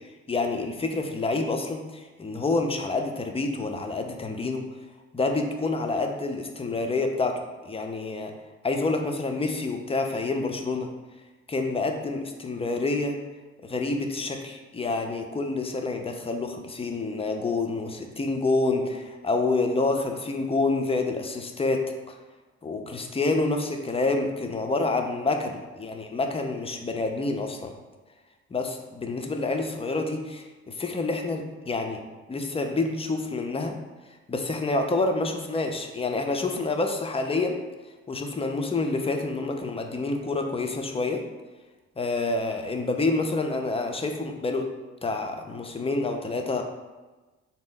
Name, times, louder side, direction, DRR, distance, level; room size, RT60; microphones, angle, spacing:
voice 1, 0.3-4.7 5.1-8.3 8.6-10.9 11.5-13.2 13.6-22.2 22.6-27.7 28.5-32.0 32.3-33.8 34.3-37.6 38.1-41.2 42.0-44.7 45.0-46.6, left 3 dB, 20° left, 4 dB, 0.5 m, -28 dB
4.0 x 2.1 x 3.8 m, 1.2 s
hypercardioid pair, 50°, 31 cm